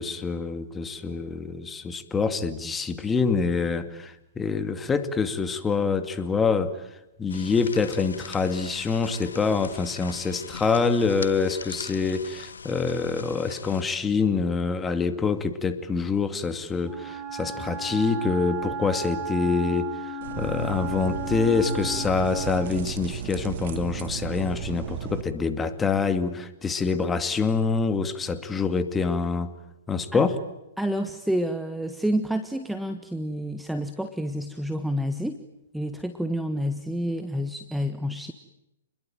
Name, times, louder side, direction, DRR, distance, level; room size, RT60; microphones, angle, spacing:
voice 1, 0.0-6.8 7.2-19.9 20.4-29.5 29.9-30.4, left 5 dB, 15° left, 2.4 m, -26 dB
sound 1, 7.3-13.8, left 5 dB, 80° left, 1.5 m, -41 dB
Wind instrument woodwind instrument, 16.8-22.8, right 3 dB, 25° right, 4.7 m, -34 dB
sound 2, 20.2-25.2, right 9 dB, 55° right, 3.0 m, -34 dB
voice 2, 30.8-35.4 35.7-38.3, equal, ahead, 1.5 m, -29 dB
30.0 x 22.0 x 9.2 m
hypercardioid pair, 125°, 0 cm